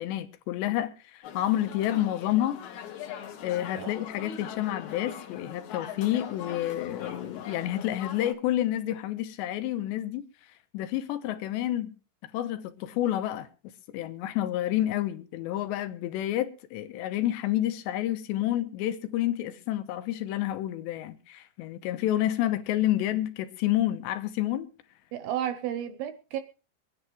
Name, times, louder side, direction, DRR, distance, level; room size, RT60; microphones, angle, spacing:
voice 1, 0.0-2.6 3.4-10.3 10.7-12.0 12.3-13.5 13.9-24.7, left 13 dB, 90° left, 3.2 m, -29 dB
sound 1, 1.2-8.3, left 8 dB, 60° left, 2.1 m, -41 dB
voice 2, 25.1-26.4, right 10 dB, 75° right, 2.4 m, -32 dB
24.5 x 10.5 x 3.2 m
omnidirectional pair, 5.0 m